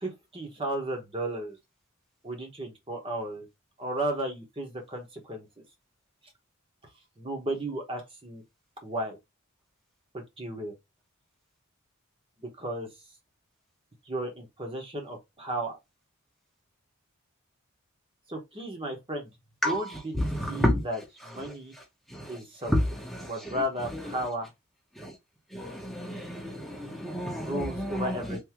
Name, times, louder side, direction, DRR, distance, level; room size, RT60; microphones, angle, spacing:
voice 1, 0.0-1.6 2.2-3.5 3.8-5.5 7.2-8.4 8.8-9.2 10.1-10.7 12.4-12.9 14.1-15.8 18.3-19.3 19.6-21.7 22.3-22.8 23.3-24.5 27.3-28.4, right 1 dB, 25° right, 0.9 m, -34 dB
voice 2, 20.3-20.8 22.2-22.3 22.7-22.8 23.1-23.3 25.0-25.1 25.5-28.2, equal, ahead, 0.8 m, -30 dB
3.6 x 2.7 x 2.9 m
head